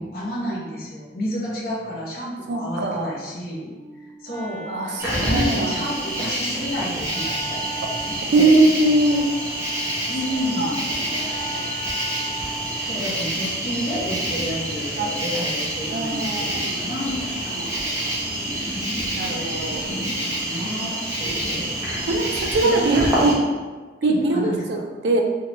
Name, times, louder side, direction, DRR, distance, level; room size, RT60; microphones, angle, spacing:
voice 1, 0.0-3.7 4.2-7.7 8.0-8.5 10.1-10.9 11.4-11.5 12.8-17.6 19.4-19.5 19.8-21.7 22.6-23.0 24.0-24.9, equal, 55° left, -5 dB, 0.7 m, -30 dB
voice 2, 2.5-3.1 4.7-5.8 8.3-9.3 10.6-10.7 11.1-11.7 14.9-15.2 15.9-16.8 17.5-18.1 19.1-19.8 20.8-20.9 21.2-21.4 22.1-23.4 24.0-24.8 25.0-25.2, right 2 dB, 70° right, 3 dB, 0.4 m, -22 dB
Wind instrument woodwind instrument, 3.7-12.8, equal, 35° right, 0.9 m, -39 dB
Cricket, 5.0-23.3, right 1 dB, 15° right, 0.6 m, -27 dB
2.8 x 2.2 x 3.0 m, 1.3 s
head